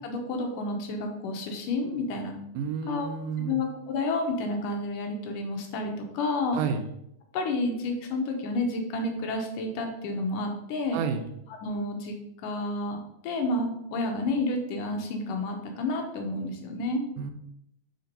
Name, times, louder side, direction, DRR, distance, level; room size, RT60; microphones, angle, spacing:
voice 1, 0.0-2.3 2.9-3.1 3.5-6.6 7.3-11.0 11.6-12.1 12.4-13.0 13.2-17.0, left 2 dB, 75° left, 3 dB, 2.3 m, -30 dB
voice 2, 2.6-3.6 6.5-6.8 10.9-11.2 17.2-17.3, right 6 dB, 80° right, 7 dB, 2.3 m, -30 dB
5.1 x 4.6 x 5.3 m, 0.79 s
omnidirectional pair, 4.0 m